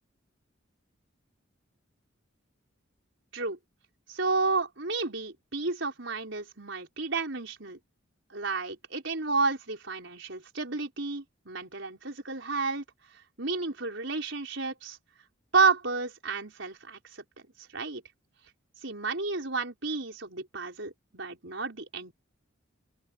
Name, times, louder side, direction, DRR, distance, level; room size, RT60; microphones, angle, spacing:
voice 1, 4.1-7.8 8.3-12.8 13.4-15.0 15.5-17.2 17.6-18.0 18.8-22.1, right 4 dB, 65° right, 5.4 m, -31 dB
open air
head